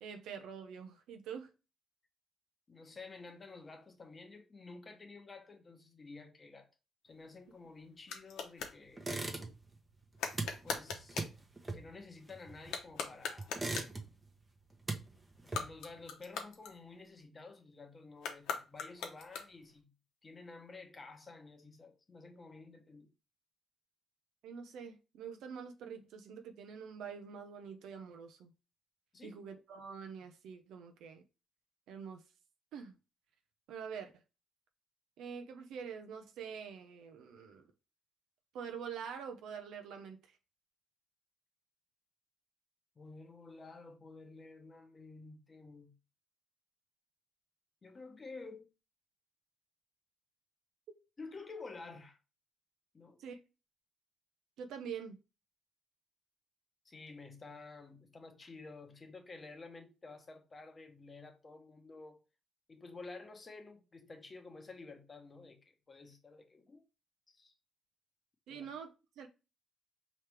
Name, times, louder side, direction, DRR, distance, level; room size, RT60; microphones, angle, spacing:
voice 1, 0.0-1.5 24.4-28.5 29.2-31.2 31.9-32.2 32.7-33.0 33.7-34.1 35.2-37.7 38.5-40.4 53.2-53.4 54.6-55.2 68.5-69.3, right 6 dB, 85° right, 0.7 m, -46 dB
voice 2, 2.7-6.7 7.0-9.1 10.6-11.2 11.7-13.5 15.4-19.9 20.2-23.1 29.1-29.4 43.0-46.0 47.8-48.7 51.2-52.2 52.9-53.2 56.8-62.2 62.7-66.8 67.3-67.5 68.5-68.7, left 3 dB, 30° left, 1.0 m, -51 dB
sound 1, 7.1-8.8 10.2-11.4 12.6-14.0 15.4-17.2 18.2-19.8, left 6 dB, 85° left, 0.9 m, -42 dB
sound 2, 9.0-9.8 10.0-13.0 13.4-14.3 14.6-16.0, right 2 dB, 20° right, 1.0 m, -40 dB
4.8 x 3.1 x 3.4 m
cardioid pair, 90°, 0 cm